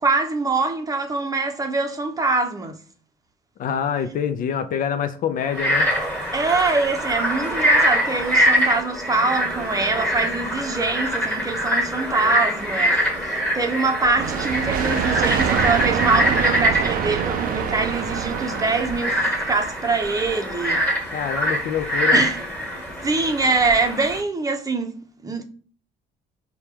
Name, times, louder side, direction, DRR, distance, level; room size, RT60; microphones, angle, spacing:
voice 1, 0.0-2.8 6.3-13.0 13.2-19.2 19.5-20.8 22.1-22.4 23.0-25.0 25.2-25.4, right 3 dB, 20° right, 0.7 m, -24 dB
voice 2, 3.6-5.9 21.1-22.2, left 8 dB, 55° left, 0.4 m, -25 dB
Frog, 5.4-24.2, equal, 10° left, 1.5 m, -24 dB
sound 1, 14.2-19.7, right 9 dB, 55° right, 0.4 m, -26 dB
4.5 x 2.3 x 3.3 m
cardioid pair, 110°, 17 cm